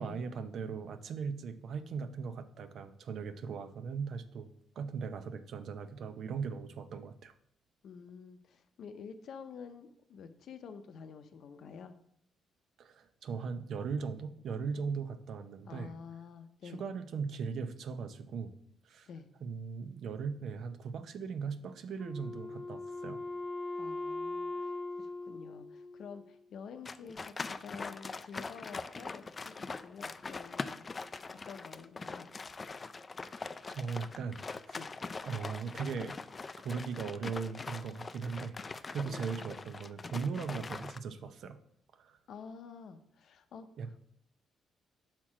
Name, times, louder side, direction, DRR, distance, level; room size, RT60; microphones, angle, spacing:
voice 1, 0.0-4.5 4.8-7.3 12.8-15.9 16.6-18.5 18.8-19.1 19.4-23.2 33.2-34.4 34.7-34.8 35.2-36.2 36.6-41.6 42.0-42.2 43.8-44.0, right 5 dB, 65° right, 10 dB, 0.6 m, -39 dB
voice 2, 7.8-12.0 15.6-16.8 19.1-19.3 23.8-29.5 29.8-30.8 31.4-32.3 34.8-34.9 39.0-39.3 40.5-40.7 42.3-44.0, left 6 dB, 65° left, 9 dB, 0.6 m, -49 dB
Wind instrument woodwind instrument, 22.0-26.5, left 2 dB, 10° left, 1.2 m, -40 dB
sound 1, 26.8-41.0, left 4 dB, 30° left, 0.3 m, -42 dB
5.9 x 4.4 x 4.8 m, 0.69 s
cardioid pair, 90°, 0 cm